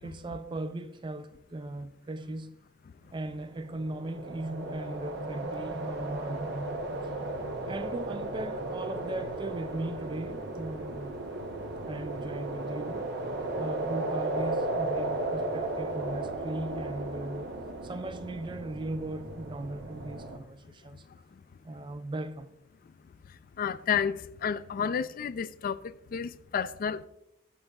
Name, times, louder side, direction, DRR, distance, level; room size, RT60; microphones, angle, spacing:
voice 1, 0.0-2.5 3.1-6.7 7.0-7.3 7.7-11.2 11.9-13.3 13.6-17.5 17.8-21.0 21.6-22.5, right 2 dB, 25° right, 0.4 m, -38 dB
sound 1, 3.4-20.4, right 2 dB, 60° right, 0.8 m, -35 dB
voice 2, 23.6-24.2 24.4-25.8 26.1-27.1, left 7 dB, 45° left, 0.3 m, -30 dB
11.5 x 7.0 x 2.4 m
head